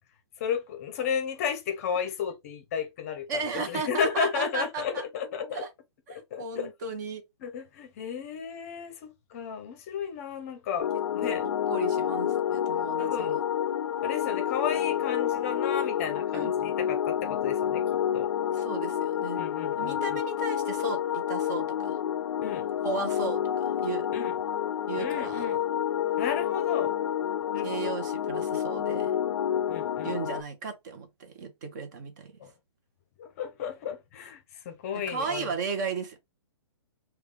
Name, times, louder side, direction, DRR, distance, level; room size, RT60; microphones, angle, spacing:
voice 1, 0.4-5.6 6.1-6.7 7.4-10.9 11.2-11.4 13.0-13.4 14.0-17.8 18.1-18.3 19.4-20.2 22.4-22.6 24.1-24.3 25.0-25.6 26.2-26.9 27.5-27.9 29.7-30.2 32.4-32.5 33.2-35.5, left 7 dB, 35° left, 0.6 m, -33 dB
voice 2, 3.3-5.0 5.5-5.7 6.1-7.2 11.2-13.4 16.3-16.5 18.5-19.4 19.8-22.0 22.8-24.1 24.9-25.6 27.6-29.2 30.0-32.4 35.1-36.2, right 5 dB, 40° right, 0.8 m, -35 dB
sound 1, 10.8-30.4, left 10 dB, 85° left, 0.4 m, -29 dB
3.5 x 2.3 x 3.3 m
hypercardioid pair, 160°, 14 cm